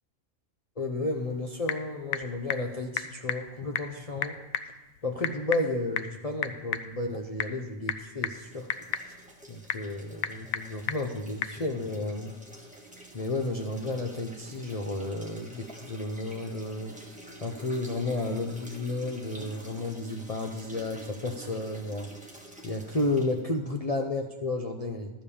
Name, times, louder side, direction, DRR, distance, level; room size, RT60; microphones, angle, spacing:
voice 1, 0.8-4.4 5.0-8.7 9.0-9.1 9.5-12.3 13.1-16.9 17.4-22.1 22.6-25.1, left 2 dB, 40° left, 2 dB, 0.6 m, -32 dB
Typing / Telephone, 1.1-11.6, left 9 dB, 90° left, 1.0 m, -36 dB
sound 1, 8.3-23.4, right 1 dB, 5° right, 1.4 m, -48 dB
12.5 x 5.1 x 6.9 m, 1.1 s
omnidirectional pair, 1.4 m